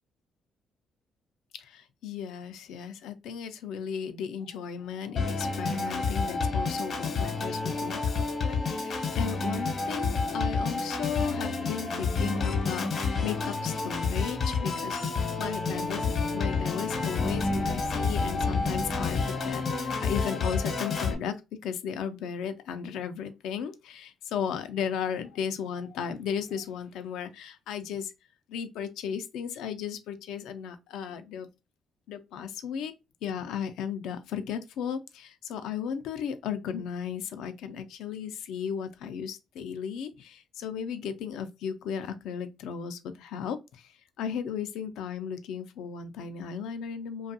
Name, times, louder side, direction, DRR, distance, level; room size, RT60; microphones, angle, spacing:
voice 1, 1.5-21.4 21.6-28.1 28.5-31.5 32.1-32.9 33.2-43.9 44.2-47.3, left 7 dB, 85° left, 0.4 m, -35 dB
Organ, 5.2-21.2, left 4 dB, 55° left, 0.8 m, -29 dB
2.6 x 2.3 x 2.6 m
cardioid pair, 90°, 0 cm